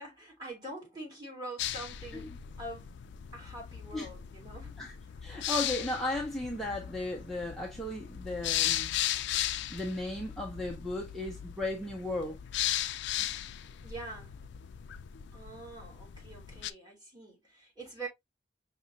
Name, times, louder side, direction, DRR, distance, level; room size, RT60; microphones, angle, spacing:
voice 1, 0.0-2.3 2.6-2.9 3.3-4.8 13.3-13.5 13.8-14.5 15.3-18.1, right 2 dB, 25° right, 2.0 m, -45 dB
sound 1, 1.6-16.7, left 12 dB, 70° left, 0.3 m, -37 dB
voice 2, 5.2-8.9 9.3-9.4 9.7-12.4, left 1 dB, ahead, 0.7 m, -35 dB
5.4 x 2.9 x 2.5 m
head